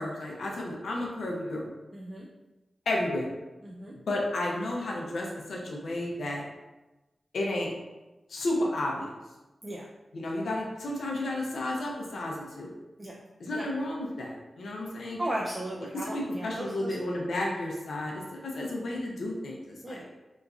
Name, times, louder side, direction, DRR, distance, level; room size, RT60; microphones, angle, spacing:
voice 1, 0.0-1.7 2.9-3.3 4.1-6.4 7.3-7.7 8.3-9.1 10.1-12.7 13.4-15.2 16.0-20.1, left 1 dB, 85° left, -1 dB, 0.5 m, -32 dB
voice 2, 1.9-2.3 3.6-3.9 9.6-9.9 13.0-13.2 13.5-13.7 15.2-16.9 19.8-20.0, right 1 dB, 30° right, -4 dB, 0.4 m, -36 dB
2.9 x 2.3 x 2.4 m, 1.1 s
cardioid pair, 55°, 0 cm